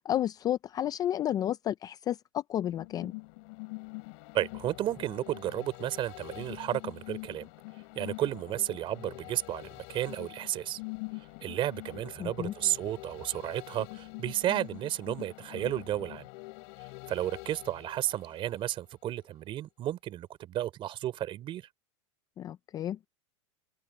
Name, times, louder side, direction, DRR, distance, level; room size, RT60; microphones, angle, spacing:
voice 1, 0.1-3.1 12.2-12.5 22.4-23.1, left 11 dB, 25° left, 0.5 m, -31 dB
sound 1, 2.7-18.9 19.3-19.4, left 30 dB, 55° left, 7.2 m, -45 dB
voice 2, 4.3-7.5 8.0-10.8 11.4-16.3 17.1-21.7, right 12 dB, 30° right, 3.6 m, -33 dB
supercardioid pair, 145°, 16 cm